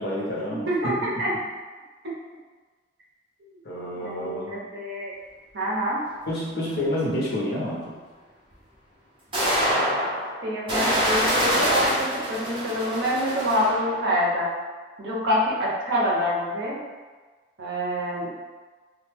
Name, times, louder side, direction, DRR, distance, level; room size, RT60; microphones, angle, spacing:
voice 1, 0.0-0.7 3.6-4.6 6.3-8.0, left 1 dB, 55° left, -5 dB, 0.8 m, -28 dB
voice 2, 0.7-1.3 3.9-5.1 5.5-6.0 10.4-14.5 15.0-16.8 17.6-18.3, equal, 60° right, -5 dB, 0.8 m, -26 dB
sound 1, 6.6-6.7 8.5-8.6 9.3-14.0, equal, 25° right, 0.9 m, -25 dB
3.1 x 2.3 x 3.5 m, 1.4 s
head